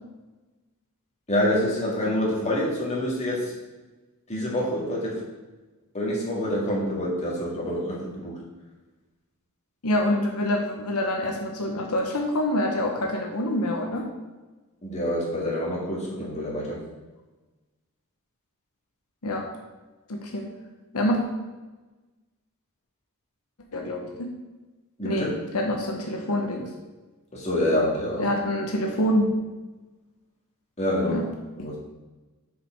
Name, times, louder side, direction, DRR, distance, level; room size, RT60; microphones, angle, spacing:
voice 1, 1.3-3.5 4.3-5.2 5.9-8.4 14.8-16.8 25.0-25.3 27.3-28.3 30.8-31.2 31.6-31.8, left 1 dB, 30° left, -5 dB, 2.0 m, -26 dB
voice 2, 9.8-14.1 19.2-19.5 20.1-20.5 20.9-21.2 23.7-24.1 25.0-25.3 25.5-26.7 28.2-29.3 31.1-31.3, left 1 dB, 85° left, 1 dB, 0.9 m, -26 dB
6.9 x 4.9 x 4.4 m, 1.2 s
head